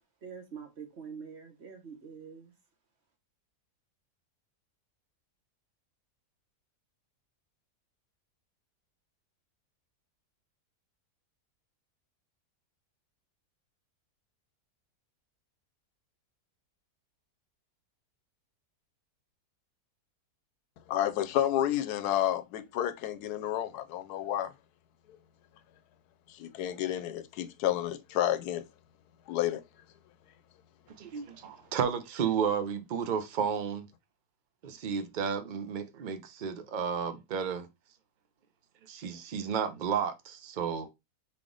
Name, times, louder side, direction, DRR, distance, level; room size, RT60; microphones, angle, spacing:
voice 1, 0.2-2.5, right 6 dB, 50° right, 1.0 m, -45 dB
voice 2, 20.9-24.5 26.3-28.6 29.3-29.6, left 12 dB, 80° left, 1.1 m, -30 dB
voice 3, 31.0-33.9 34.6-37.7 38.9-40.9, right 7 dB, 90° right, 0.4 m, -32 dB
4.0 x 3.4 x 3.7 m
omnidirectional pair, 1.7 m